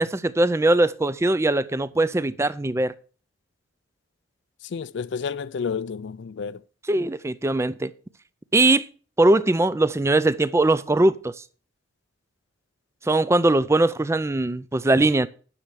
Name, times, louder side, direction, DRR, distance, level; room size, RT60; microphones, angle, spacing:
voice 1, 0.0-2.9 6.9-7.9 8.5-8.9 9.2-11.3 13.0-15.3, right 2 dB, 15° right, 0.4 m, -21 dB
voice 2, 4.6-6.6, left 6 dB, 60° left, 0.4 m, -30 dB
9.9 x 6.6 x 6.2 m
head